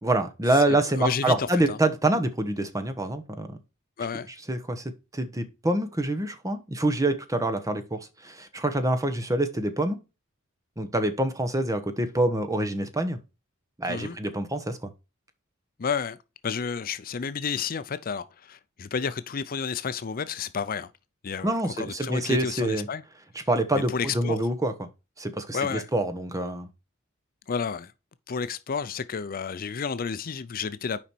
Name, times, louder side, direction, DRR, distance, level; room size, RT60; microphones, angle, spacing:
voice 1, 0.0-3.6 4.5-10.0 10.8-13.2 13.8-14.9 21.4-22.9 23.3-24.9 25.2-26.7, right 1 dB, 15° right, 1.0 m, -26 dB
voice 2, 1.0-1.8 4.0-4.3 13.9-14.2 15.8-16.2 16.4-20.9 21.2-23.0 23.9-24.4 25.5-25.9 27.5-27.9 28.3-31.0, left 6 dB, 45° left, 0.5 m, -31 dB
7.1 x 5.2 x 4.4 m
head